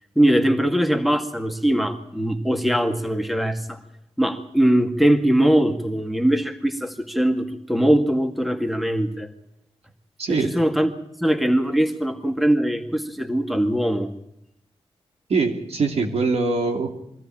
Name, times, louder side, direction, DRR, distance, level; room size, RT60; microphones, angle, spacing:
voice 1, 0.2-3.8 4.2-9.3 10.3-10.9 11.2-14.1, right 1 dB, ahead, 6 dB, 2.1 m, -21 dB
voice 2, 10.2-10.5 15.3-17.0, right 4 dB, 75° right, 3 dB, 2.9 m, -22 dB
23.0 x 14.0 x 8.8 m, 0.79 s
cardioid pair, 60°, 11 cm